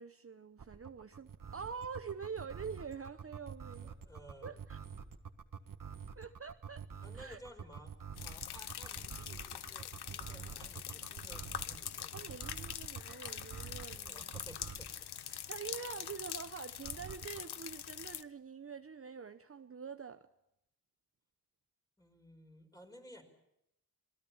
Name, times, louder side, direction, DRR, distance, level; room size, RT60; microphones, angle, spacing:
voice 1, 0.0-3.9 4.4-4.8 6.2-6.9 7.1-7.4 12.1-14.3 15.5-20.3, right 6 dB, 35° right, 0.8 m, -46 dB
sound 1, 0.6-15.0 16.8-17.4, right 6 dB, 55° right, 1.7 m, -47 dB
voice 2, 3.8-4.6 7.0-7.9 8.2-12.5 14.1-15.5 22.0-23.2, equal, 10° left, 5.3 m, -56 dB
sound 2, 8.2-18.2, left 10 dB, 85° left, 0.8 m, -44 dB
26.0 x 19.5 x 7.1 m
cardioid pair, 70°, 38 cm